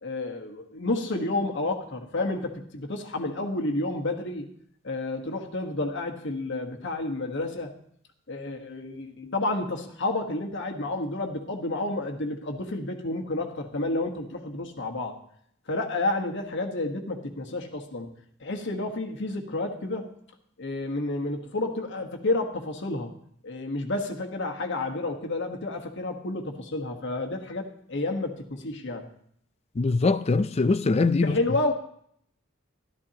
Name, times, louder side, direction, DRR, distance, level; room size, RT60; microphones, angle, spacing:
voice 1, 0.0-4.5 4.8-7.7 8.3-15.2 15.7-18.1 18.4-20.1 20.6-23.1 23.4-29.1 31.2-31.7, left 2 dB, 60° left, 1.3 m, -30 dB
voice 2, 29.8-31.4, left 3 dB, 30° left, 0.4 m, -22 dB
13.0 x 12.5 x 2.9 m
head